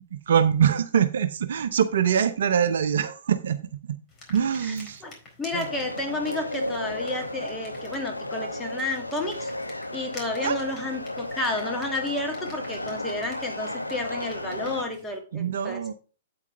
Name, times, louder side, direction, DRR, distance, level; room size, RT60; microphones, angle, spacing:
voice 1, 0.1-3.6 4.3-5.0 5.5-5.7 10.4-10.6 15.3-15.9, right 8 dB, 60° right, 11 dB, 0.7 m, -23 dB
sound 1, 4.1-15.2, left 2 dB, 20° left, 4.2 m, -50 dB
voice 2, 5.4-9.5 9.9-15.8, left 2 dB, 5° left, 2 dB, 2.2 m, -31 dB
sound 2, 5.5-14.8, left 1 dB, 90° left, 0.9 m, -34 dB
8.6 x 8.4 x 3.4 m, 0.35 s
figure-of-eight pair, 110°, 0 cm